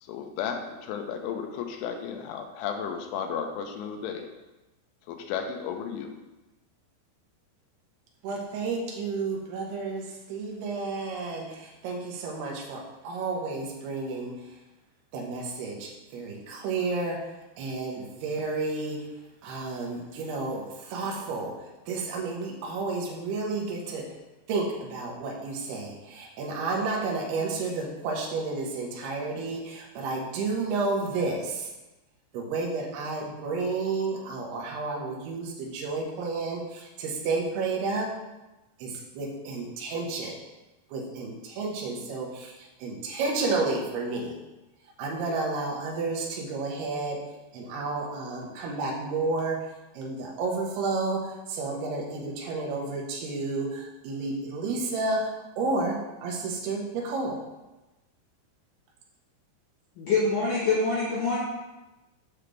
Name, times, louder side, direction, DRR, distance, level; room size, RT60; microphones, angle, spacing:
voice 1, 0.0-4.3 5.1-6.1, left 7 dB, 85° left, 5 dB, 3.2 m, -34 dB
voice 2, 8.2-14.6 15.1-19.1 19.4-24.2 24.5-31.7 32.3-38.1 38.8-40.4 40.9-44.4 45.0-47.2 47.5-49.7 49.9-57.4, right 3 dB, 70° right, -1 dB, 2.7 m, -31 dB
voice 3, 60.0-61.4, left 3 dB, 65° left, -8 dB, 2.3 m, -25 dB
8.0 x 5.8 x 3.3 m, 1.1 s
omnidirectional pair, 5.5 m